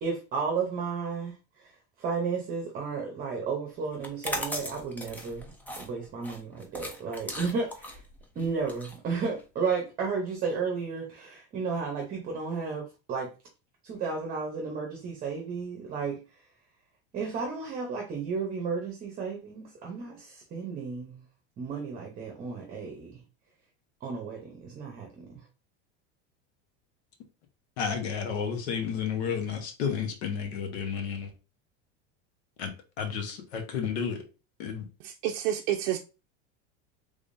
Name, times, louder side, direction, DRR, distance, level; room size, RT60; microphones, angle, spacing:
voice 1, 0.0-8.0 8.4-13.3 13.8-16.2 17.1-21.2 21.6-23.2 24.0-25.3, right 5 dB, 25° right, 0.8 m, -33 dB
sound 1, 3.9-9.7, left 1 dB, 5° left, 0.3 m, -38 dB
voice 2, 27.8-31.3 32.6-32.7 33.0-34.2 34.6-34.9, left 7 dB, 80° left, 1.2 m, -31 dB
voice 3, 35.0-36.0, right 11 dB, 90° right, 0.5 m, -29 dB
3.5 x 3.4 x 2.6 m
supercardioid pair, 155°, 32 cm